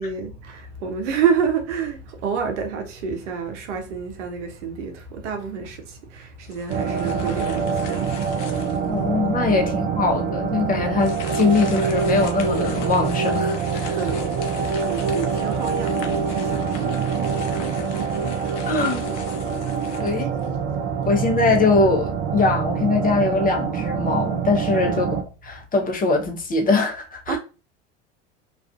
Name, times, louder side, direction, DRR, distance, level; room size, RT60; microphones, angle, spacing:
voice 1, 0.0-8.9 9.4-10.1 13.9-19.3 19.6-20.3 21.1-21.2 24.7-25.2 27.3-27.4, right 6 dB, 75° right, 0.6 m, -30 dB
sound 1, 6.5-9.0 9.6-9.7 10.9-20.7, left 5 dB, 75° left, 0.6 m, -40 dB
sound 2, 6.7-25.2, right 6 dB, 35° right, 0.5 m, -25 dB
voice 2, 8.9-14.0 18.7-19.0 20.0-20.3 21.1-25.1 25.4-27.4, left 3 dB, 25° left, 0.6 m, -22 dB
2.4 x 2.4 x 2.3 m
hypercardioid pair, 75°, 36 cm